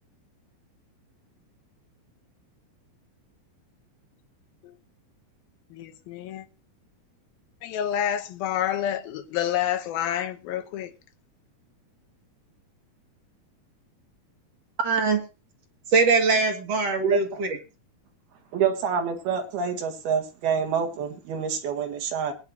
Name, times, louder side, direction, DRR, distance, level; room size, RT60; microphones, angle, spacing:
voice 1, 5.7-6.5 7.6-10.9, left 10 dB, 75° left, 2.8 m, -28 dB
voice 2, 14.8-15.2 15.9-17.6, right 4 dB, 50° right, 2.4 m, -22 dB
voice 3, 18.5-22.3, right 7 dB, 80° right, 3.7 m, -27 dB
20.5 x 9.8 x 2.8 m
omnidirectional pair, 4.4 m